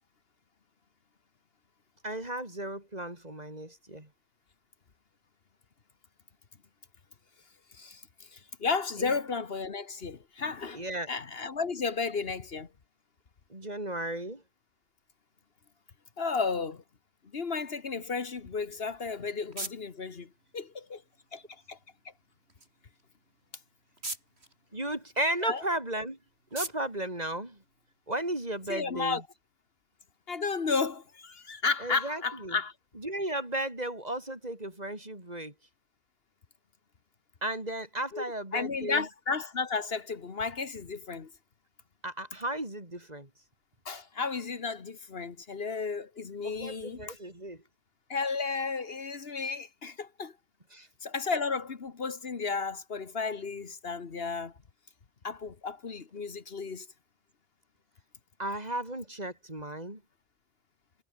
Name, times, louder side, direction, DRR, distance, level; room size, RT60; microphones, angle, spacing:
voice 1, 2.0-4.1 9.0-9.1 10.7-11.1 13.5-14.4 24.7-26.2 26.5-27.6 28.1-29.2 31.8-32.6 33.0-35.5 37.4-39.1 42.0-43.3 46.4-47.6 50.7-50.9 58.4-60.0, right 1 dB, 40° right, 4.6 m, -35 dB
voice 2, 7.7-12.7 16.2-16.8 17.3-21.0 21.3-21.4 21.7-21.8 25.4-25.6 28.7-29.2 30.3-32.7 38.1-38.2 38.5-41.3 43.8-47.2 48.1-50.3 51.0-54.5 55.2-56.9, left 4 dB, 65° left, 1.6 m, -33 dB
sound 1, 18.8-28.2, right 2 dB, 70° right, 5.0 m, -46 dB
omnidirectional pair, 1.1 m